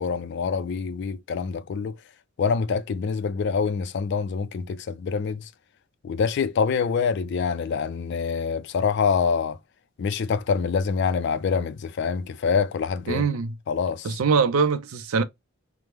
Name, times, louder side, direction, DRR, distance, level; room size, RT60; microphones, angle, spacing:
voice 1, 0.0-2.0 2.4-5.5 6.0-9.6 10.0-13.3 13.7-14.2, left 5 dB, 55° left, 0.3 m, -25 dB
voice 2, 13.1-13.5 14.0-15.2, right 5 dB, 80° right, 0.5 m, -23 dB
3.3 x 2.0 x 2.9 m
head